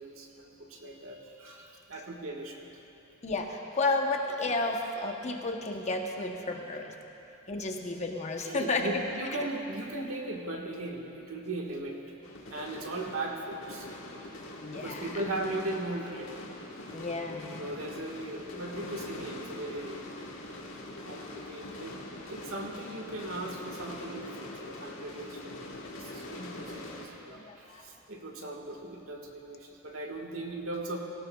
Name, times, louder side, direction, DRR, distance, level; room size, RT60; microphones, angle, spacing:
voice 1, 0.0-2.7 8.4-12.0 12.5-13.9 14.7-16.3 17.6-20.1 21.0-22.0 22.3-31.0, right 2 dB, 85° right, 0 dB, 1.6 m, -38 dB
voice 2, 3.2-6.9 7.5-9.5 14.6-15.3 16.9-17.7 20.2-20.3 22.5-22.7 26.4-26.7 27.3-27.8, left 2 dB, 35° left, 2 dB, 0.9 m, -33 dB
sound 1, 12.2-27.0, left 1 dB, 70° left, 1.5 m, -43 dB
18.5 x 17.0 x 2.3 m, 3.0 s
head